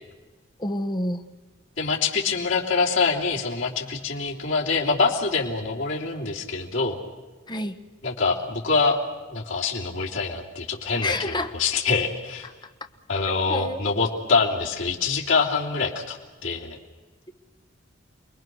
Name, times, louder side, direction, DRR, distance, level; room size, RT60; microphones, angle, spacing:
voice 1, 0.6-1.2 7.5-7.7 11.0-11.5 13.5-13.8, left 1 dB, 25° left, 8 dB, 1.1 m, -28 dB
voice 2, 1.8-7.0 8.0-9.0 9.3-12.5 13.1-16.2 16.4-16.8, left 4 dB, 90° left, -3 dB, 3.3 m, -25 dB
29.0 x 21.0 x 6.2 m, 1.2 s
head